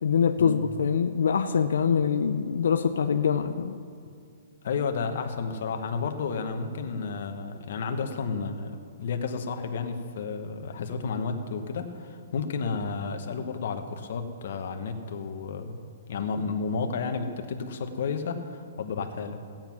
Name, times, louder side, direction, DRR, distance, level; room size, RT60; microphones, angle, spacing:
voice 1, 0.0-3.8, left 7 dB, 90° left, 7 dB, 0.6 m, -24 dB
voice 2, 4.6-8.7 9.0-15.7 16.1-19.4, left 5 dB, 50° left, 5 dB, 1.2 m, -31 dB
16.5 x 9.0 x 6.0 m, 2.3 s
hypercardioid pair, 180°, 0 cm